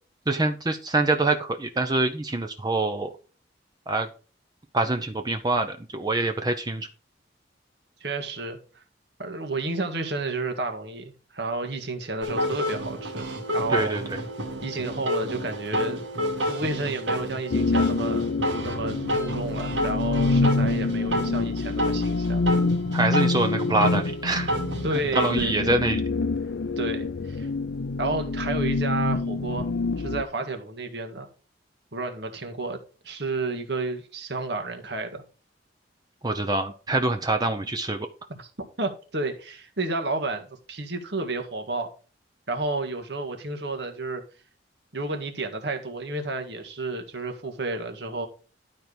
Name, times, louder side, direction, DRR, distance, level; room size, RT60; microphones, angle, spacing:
voice 1, 0.3-3.1 3.9-4.1 4.7-6.9 13.7-14.2 22.9-24.5 24.9-26.0 36.2-38.1, right 2 dB, 20° right, 0.7 m, -25 dB
voice 2, 8.0-8.8 9.2-13.2 13.5-14.2 14.6-16.0 16.4-18.3 18.6-22.5 24.8-25.8 26.8-27.5 28.0-29.7 30.0-31.3 31.9-32.8 33.0-35.2 38.3-41.9 42.5-44.2 44.9-48.3, right 2 dB, 65° right, 1.8 m, -31 dB
sound 1, 12.2-25.6, equal, 85° right, 2.5 m, -30 dB
sound 2, 17.5-30.2, left 3 dB, 80° left, 0.6 m, -26 dB
12.0 x 4.5 x 5.1 m
head